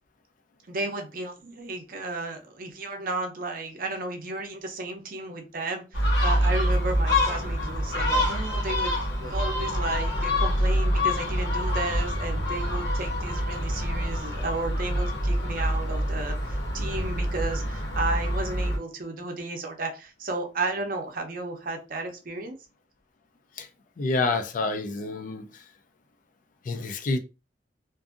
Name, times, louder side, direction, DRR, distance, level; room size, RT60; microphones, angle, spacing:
voice 1, 0.7-22.5, right 2 dB, 55° right, 0.6 m, -33 dB
Gull seagull, 5.9-18.8, equal, 85° left, 1.0 m, -26 dB
voice 2, 24.0-25.5 26.7-27.2, left 3 dB, 50° left, 0.4 m, -28 dB
2.6 x 2.5 x 2.4 m
head